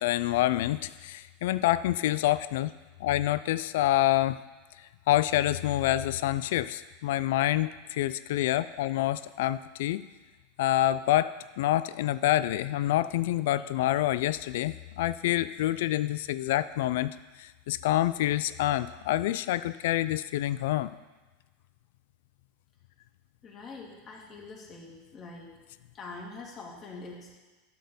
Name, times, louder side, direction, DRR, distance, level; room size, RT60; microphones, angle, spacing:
voice 1, 0.0-2.7 3.0-4.4 5.1-10.0 10.6-17.1 17.4-20.9, left 14 dB, 75° left, 15 dB, 0.3 m, -27 dB
voice 2, 23.4-25.5 25.9-27.4, left 3 dB, 35° left, -2 dB, 2.5 m, -44 dB
11.5 x 4.3 x 7.0 m, 1.2 s
hypercardioid pair, 110°, 0 cm